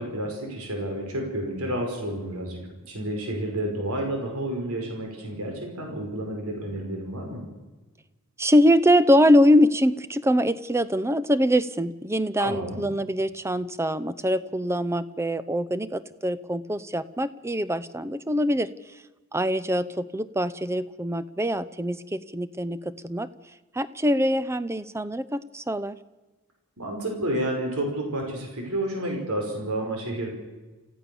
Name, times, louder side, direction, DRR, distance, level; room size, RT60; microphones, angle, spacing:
voice 1, 0.0-2.6 2.9-7.4 12.4-12.8 26.8-30.3, right 1 dB, 75° right, 2 dB, 5.4 m, -30 dB
voice 2, 8.4-18.7 19.3-23.3 23.7-26.0, equal, 10° right, 15 dB, 0.7 m, -23 dB
28.5 x 15.0 x 7.0 m, 1.2 s
head